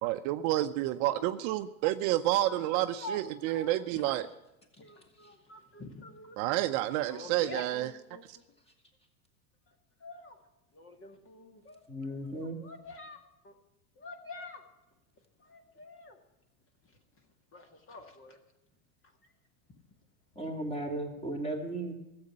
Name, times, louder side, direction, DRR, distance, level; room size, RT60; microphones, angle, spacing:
voice 1, 0.0-4.3 6.4-7.9 8.3-8.4, right 15 dB, 50° right, 10 dB, 0.8 m, -29 dB
voice 2, 1.1-1.4 2.3-4.2 4.8-6.4 7.1-8.2 10.0-10.4 10.7-11.8 12.4-13.5 14.0-14.6 15.4-16.2 17.5-18.4, left 2 dB, 30° left, 6 dB, 2.0 m, -47 dB
voice 3, 11.9-12.6 20.3-21.9, right 1 dB, 15° left, 3 dB, 2.9 m, -35 dB
14.0 x 7.9 x 9.8 m, 0.92 s
hypercardioid pair, 105°, 42 cm